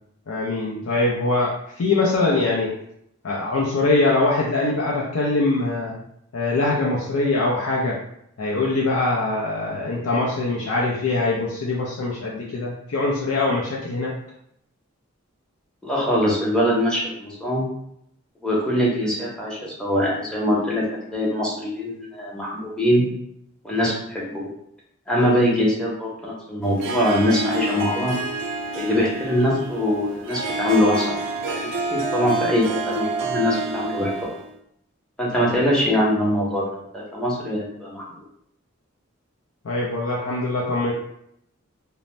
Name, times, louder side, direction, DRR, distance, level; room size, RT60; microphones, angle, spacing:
voice 1, 0.3-1.5 1.8-2.7 3.2-6.0 6.3-8.0 8.4-14.1 39.6-40.9, left 2 dB, 85° left, -4 dB, 0.5 m, -23 dB
voice 2, 15.8-17.6 18.4-20.8 21.1-23.1 23.6-24.5 25.1-28.2 28.7-34.1 35.2-38.0, left 1 dB, 5° left, -5 dB, 0.6 m, -22 dB
Harp, 26.6-34.5, right 3 dB, 60° right, 0.3 m, -28 dB
2.6 x 2.0 x 3.1 m, 0.73 s
head